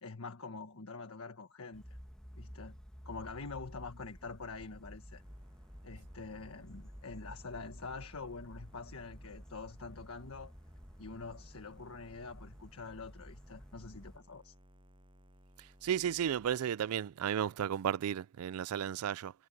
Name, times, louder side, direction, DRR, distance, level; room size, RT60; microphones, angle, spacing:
voice 1, 0.0-1.8 2.3-2.8 3.0-5.2 5.8-10.5 11.0-14.5, left 4 dB, 80° left, 1.4 m, -46 dB
sound 1, 1.7-14.2, equal, 5° left, 1.2 m, -52 dB
sound 2, 5.1-16.6, equal, 25° right, 7.9 m, -61 dB
voice 2, 15.8-19.3, right 9 dB, 85° right, 0.4 m, -33 dB
head